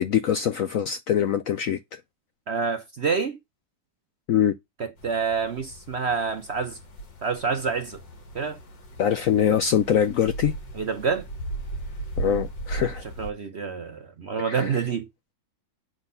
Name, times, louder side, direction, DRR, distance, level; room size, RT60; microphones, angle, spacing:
voice 1, 0.0-2.0 4.3-4.6 9.0-10.5 12.2-13.0 14.4-14.8, left 9 dB, 65° left, 0.8 m, -23 dB
voice 2, 2.5-3.4 4.8-6.8 7.2-8.0 8.3-8.6 10.8-11.3 12.8-12.9 13.2-15.0, right 5 dB, 50° right, 0.8 m, -27 dB
sound 1, 5.0-13.3, right 2 dB, 80° left, 2.6 m, -37 dB
8.2 x 3.9 x 5.5 m
omnidirectional pair, 1.9 m